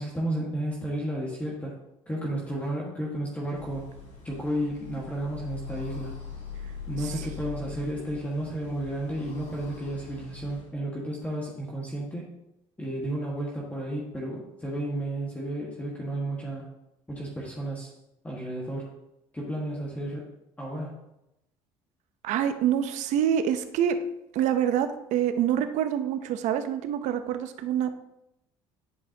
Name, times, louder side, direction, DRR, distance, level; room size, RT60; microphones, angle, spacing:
voice 1, 0.0-1.8 2.1-3.9 4.2-6.1 6.9-12.3 12.8-16.7 17.1-17.9 18.2-18.9 19.3-20.3 20.6-21.0, right 1 dB, 10° left, -4 dB, 1.6 m, -32 dB
sound 1, 3.5-10.7, left 6 dB, 55° left, 2.8 m, -42 dB
voice 2, 22.2-24.0 24.3-27.9, right 9 dB, 70° right, 9 dB, 0.7 m, -26 dB
10.0 x 5.1 x 2.8 m, 0.85 s
supercardioid pair, 100°, 13 cm